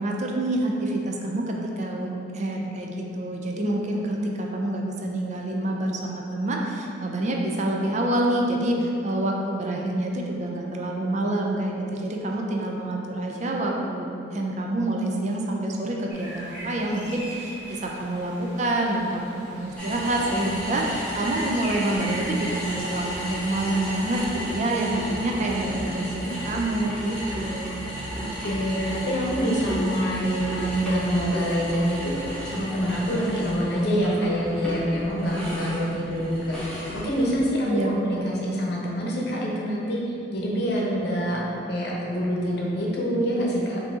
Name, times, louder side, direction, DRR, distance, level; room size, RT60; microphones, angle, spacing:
voice 1, 0.0-27.7 37.6-38.3, right 1 dB, 40° right, 0 dB, 0.4 m, -27 dB
sound 1, 16.1-23.7, right 1 dB, 15° right, 1.1 m, -40 dB
sound 2, 19.8-37.5, equal, 5° left, 1.1 m, -34 dB
voice 2, 25.8-26.3 28.2-40.0 40.3-41.4 41.7-43.8, equal, 60° left, -4 dB, 0.8 m, -26 dB
5.2 x 2.7 x 3.6 m, 2.8 s
head